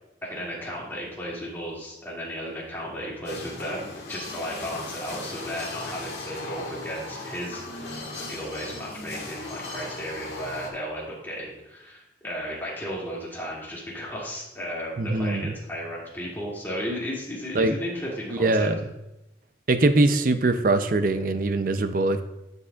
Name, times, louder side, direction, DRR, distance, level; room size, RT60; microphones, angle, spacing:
voice 1, 0.2-18.7, equal, 10° left, -6 dB, 2.4 m, -34 dB
sound 1, 3.2-10.7, left 2 dB, 70° left, 1.7 m, -37 dB
voice 2, 15.0-15.6 17.5-17.7 18.3-18.8 19.7-22.2, right 2 dB, 50° right, 9 dB, 0.6 m, -22 dB
11.5 x 6.9 x 2.4 m, 0.92 s
head